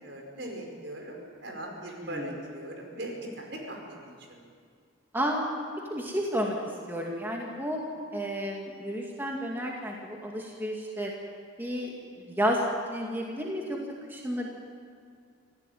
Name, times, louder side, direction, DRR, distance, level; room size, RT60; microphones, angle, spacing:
voice 1, 0.0-4.4 6.1-6.2, right 1 dB, 60° right, 1 dB, 5.2 m, -40 dB
voice 2, 5.1-5.5 5.9-6.6 6.9-7.8 8.1-11.1 11.6-11.9 12.3-12.6 12.9-13.8 14.1-14.5, equal, 10° right, -1 dB, 2.2 m, -31 dB
25.5 x 16.0 x 9.2 m, 2.2 s
head